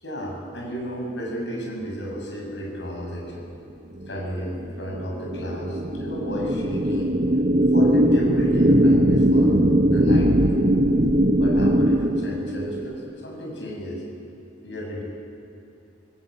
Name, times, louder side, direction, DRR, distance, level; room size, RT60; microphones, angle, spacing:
voice 1, 0.0-3.5 4.1-7.2 7.6-9.5 9.9-10.7 11.4-14.0 14.6-15.0, equal, 70° left, -1 dB, 6.8 m, -32 dB
sound 1, 4.1-12.9, equal, 45° right, 1.1 m, -20 dB
25.0 x 19.5 x 8.6 m, 2.7 s
head